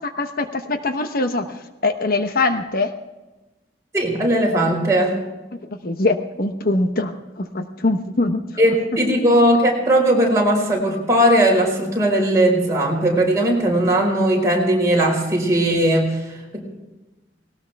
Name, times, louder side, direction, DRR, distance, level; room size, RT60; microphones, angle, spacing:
voice 1, 0.0-2.9 5.5-8.4, left 2 dB, 55° left, 7 dB, 1.0 m, -23 dB
voice 2, 3.9-5.2 8.6-16.8, right 1 dB, 20° right, -2 dB, 5.1 m, -18 dB
19.5 x 18.5 x 3.5 m, 1.1 s
head